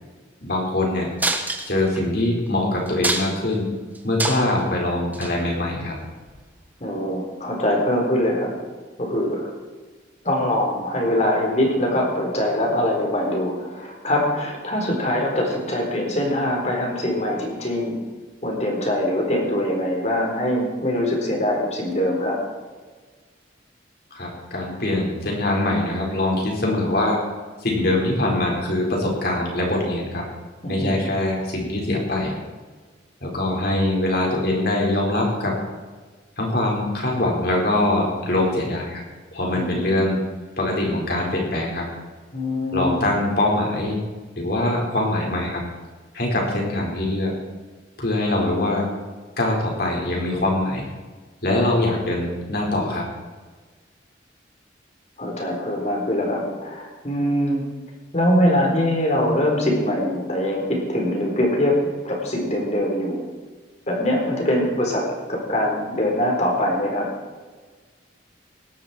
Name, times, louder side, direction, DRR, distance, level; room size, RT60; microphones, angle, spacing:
voice 1, 0.4-1.1 1.7-3.7 4.0-6.0 24.1-27.2 27.6-30.3 30.7-32.3 33.2-35.6 36.4-39.0 39.3-40.2 40.6-41.9 42.7-44.0 44.4-45.6 46.1-47.3 48.0-48.9 49.4-50.8 51.4-53.1, left 1 dB, 55° left, -1 dB, 4.8 m, -23 dB
sound 1, 1.2-2.0 2.5-2.6 2.9-3.5 3.9-4.6 5.1-5.3 6.3-6.4, right 2 dB, 10° right, 1.3 m, -25 dB
voice 2, 6.8-8.5 9.0-9.5 10.2-18.0 18.4-22.4 30.6-30.9 39.6-39.8 42.3-43.0 55.2-57.6 58.1-61.8 62.0-63.2 63.9-65.0 65.3-67.1, left 1 dB, 40° left, 0 dB, 4.2 m, -23 dB
18.0 x 12.5 x 4.5 m, 1.4 s
head